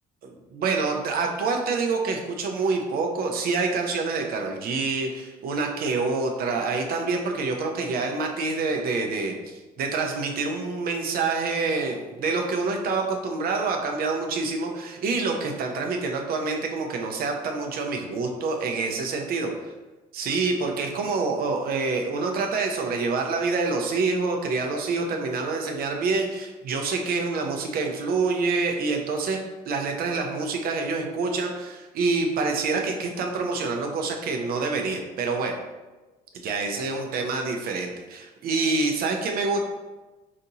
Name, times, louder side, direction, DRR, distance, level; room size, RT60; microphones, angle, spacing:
voice 1, 0.2-19.5 20.1-29.4 29.7-35.6 36.3-39.6, right 4 dB, 60° right, 2 dB, 0.7 m, -27 dB
5.1 x 2.8 x 2.6 m, 1.2 s
cardioid pair, 110°, 17 cm